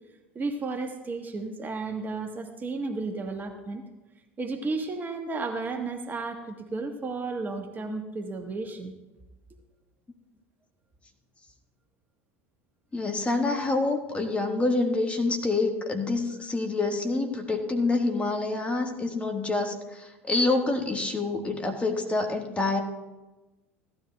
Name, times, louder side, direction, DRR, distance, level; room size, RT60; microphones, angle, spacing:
voice 1, 0.3-3.8 4.4-8.9, right 3 dB, 25° right, 5 dB, 1.2 m, -33 dB
voice 2, 12.9-22.8, left 3 dB, 15° left, 3 dB, 1.5 m, -27 dB
16.5 x 12.5 x 2.3 m, 1.1 s
hypercardioid pair, 80°, 7 cm